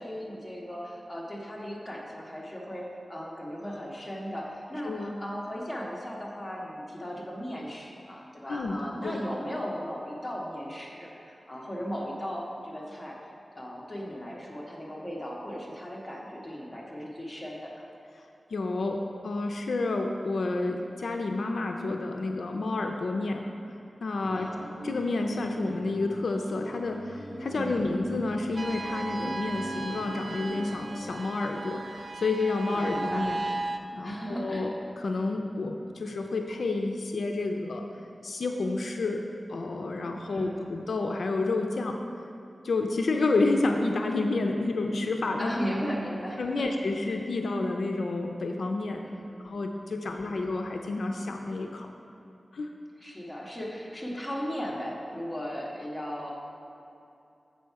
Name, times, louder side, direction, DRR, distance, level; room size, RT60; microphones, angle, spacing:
voice 1, 0.0-13.2 13.5-17.7 24.3-24.7 27.5-27.9 32.7-33.3 34.0-34.7 40.3-40.7 45.4-46.7 49.0-49.5 50.0-50.4 53.0-56.3, equal, 10° left, -4 dB, 1.3 m, -37 dB
voice 2, 18.5-23.4 24.0-24.5 24.8-33.4 33.9-37.8 38.2-39.2 39.5-42.0 42.6-45.5 46.4-49.0 49.4-51.9 52.5-52.7, left 3 dB, 80° left, 3 dB, 0.4 m, -30 dB
sound 1, 24.2-31.1, equal, 70° right, 1.2 m, -42 dB
sound 2, 28.6-33.8, right 2 dB, 45° right, 0.4 m, -36 dB
7.5 x 5.5 x 4.6 m, 2.8 s
wide cardioid pair, 100°, 0 cm